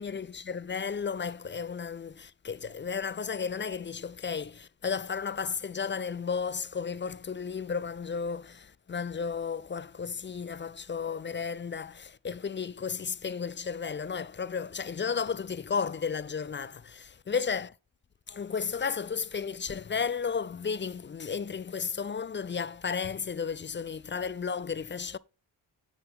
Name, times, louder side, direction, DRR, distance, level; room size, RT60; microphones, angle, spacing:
voice 1, 0.0-17.7 18.3-25.2, left 6 dB, 25° left, 0.4 m, -33 dB
7.5 x 6.1 x 3.6 m
supercardioid pair, 45°, 48 cm